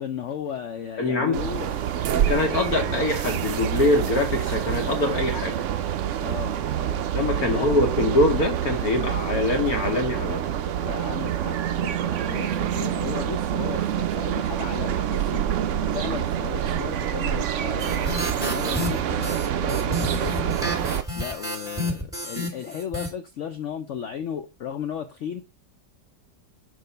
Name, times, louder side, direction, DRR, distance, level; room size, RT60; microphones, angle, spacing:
voice 1, 0.0-1.8 6.2-7.0 7.5-7.8 10.2-10.4 10.8-20.5 21.1-25.4, left 8 dB, 85° left, 0.6 m, -35 dB
voice 2, 1.0-1.3 2.1-5.6 7.1-10.4, left 2 dB, 60° left, 1.5 m, -23 dB
sound 1, 1.3-21.0, right 10 dB, 85° right, 0.6 m, -26 dB
sound 2, 17.8-23.1, left 1 dB, ahead, 1.6 m, -31 dB
6.4 x 4.5 x 3.9 m
omnidirectional pair, 1.9 m